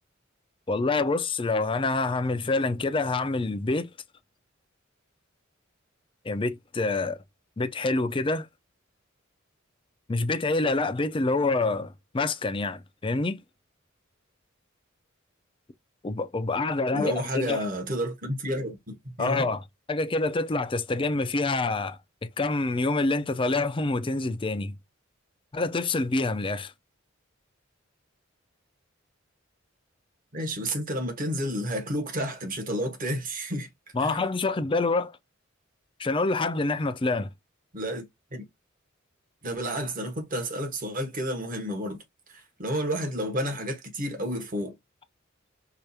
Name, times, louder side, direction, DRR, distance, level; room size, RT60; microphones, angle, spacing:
voice 1, 0.7-3.9 6.2-7.2 7.6-8.5 10.1-13.4 16.0-17.6 19.2-19.6 19.9-22.0 22.4-24.8 25.5-26.7 33.9-35.2 36.0-37.3, left 3 dB, 25° left, 0.5 m, -26 dB
voice 2, 16.9-19.4 30.3-33.7 34.0-34.2 37.7-38.0 38.3-38.4 39.4-42.0 42.3-44.7, equal, 45° right, 1.4 m, -31 dB
4.8 x 2.5 x 2.8 m
head